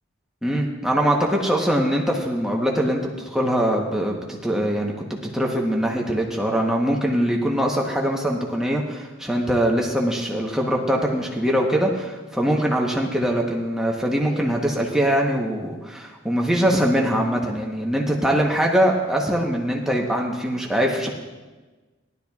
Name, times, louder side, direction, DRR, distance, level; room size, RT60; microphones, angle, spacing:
voice 1, 0.4-21.1, equal, 5° right, -1 dB, 0.9 m, -22 dB
18.0 x 12.0 x 2.3 m, 1.3 s
head